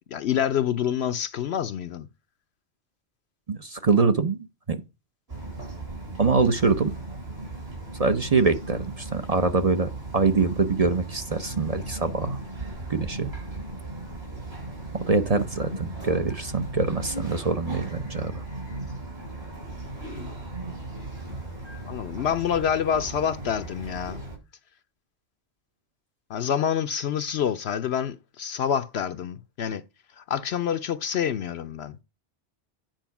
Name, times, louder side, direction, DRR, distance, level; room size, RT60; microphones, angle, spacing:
voice 1, 0.1-2.1 21.9-24.2 26.3-29.8 30.2-32.0, left 8 dB, 70° left, 0.8 m, -27 dB
voice 2, 3.5-4.4 4.7-4.8 6.2-6.9 8.0-12.4 12.9-13.3 15.1-18.4, right 4 dB, 40° right, 0.8 m, -24 dB
Bird vocalization bird call bird song, 5.3-24.4, right 2 dB, 60° right, 4.4 m, -37 dB
9.1 x 4.6 x 5.9 m
omnidirectional pair, 1.2 m